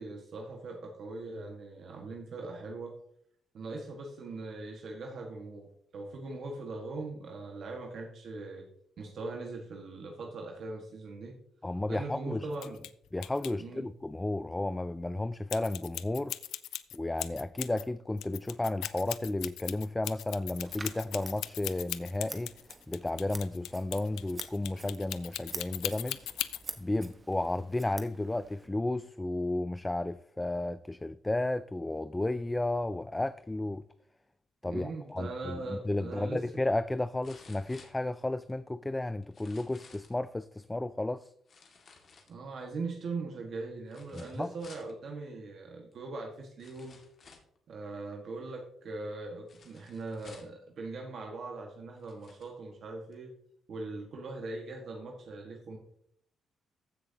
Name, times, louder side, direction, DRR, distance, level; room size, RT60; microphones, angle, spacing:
voice 1, 0.0-2.9 3.5-8.7 9.0-11.4 11.9-12.8 13.6-13.9 34.6-36.4 42.3-47.0 47.7-53.3 53.7-55.8, right 3 dB, 60° right, 1.6 m, -40 dB
voice 2, 11.6-12.5 13.1-16.4 16.9-22.5 22.9-26.3 26.8-33.8 34.6-41.3 44.1-44.5, left 2 dB, 15° left, 0.3 m, -33 dB
sound 1, 12.5-12.9 13.2-13.5 15.5-17.8 18.2-26.6, left 13 dB, 85° left, 0.4 m, -38 dB
Scissors, 20.7-28.7, right 3 dB, 30° right, 1.1 m, -48 dB
sound 2, 35.8-35.9 37.2-38.5 39.2-40.2 41.5-42.7 43.9-44.9 45.9-46.0 46.6-47.6 49.5-50.6 51.4-51.5 51.9-52.5 53.1-53.2, left 4 dB, 50° left, 2.0 m, -56 dB
14.5 x 6.5 x 2.8 m
cardioid pair, 90°, 0 cm